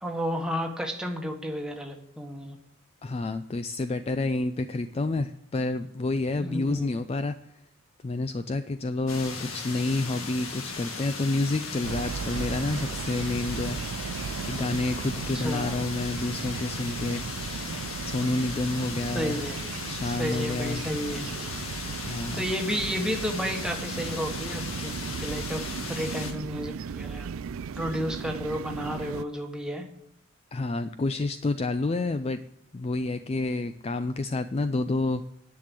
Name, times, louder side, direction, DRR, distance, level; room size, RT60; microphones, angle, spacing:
voice 1, 0.0-2.6 6.4-6.9 10.2-10.3 15.3-15.8 19.0-19.6 20.0-21.3 22.4-24.9 25.2-25.6 25.9-27.3 27.7-29.9, equal, 5° right, 2 dB, 1.3 m, -32 dB
voice 2, 3.0-7.4 8.0-13.8 14.4-17.2 18.0-19.4 19.9-20.8 22.0-22.4 30.5-32.4 32.7-35.2, left 2 dB, 30° left, 10 dB, 0.3 m, -29 dB
sound 1, 9.1-26.3, left 4 dB, 90° left, 1.7 m, -37 dB
sound 2, 11.8-29.2, right 6 dB, 80° right, 0.4 m, -36 dB
10.5 x 6.7 x 7.6 m, 0.73 s
head